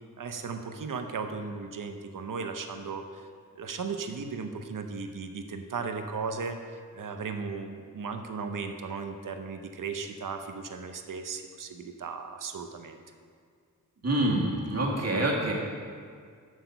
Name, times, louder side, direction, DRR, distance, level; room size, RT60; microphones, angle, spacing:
voice 1, 0.2-3.3 3.6-13.0, right 5 dB, 70° right, 6 dB, 0.8 m, -36 dB
voice 2, 14.0-15.5, right 1 dB, 50° right, -2 dB, 1.7 m, -26 dB
7.9 x 6.5 x 5.7 m, 2.1 s
wide cardioid pair, 80°, 34 cm